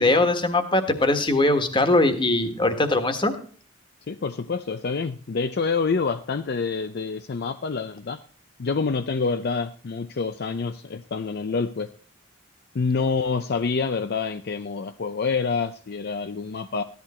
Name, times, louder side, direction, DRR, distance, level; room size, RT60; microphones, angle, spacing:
voice 1, 0.0-3.3, left 2 dB, 25° left, 8 dB, 1.5 m, -21 dB
voice 2, 4.1-8.2 8.6-11.9 12.7-16.8, left 4 dB, 55° left, 10 dB, 0.5 m, -27 dB
15.0 x 11.0 x 4.3 m, 0.43 s
head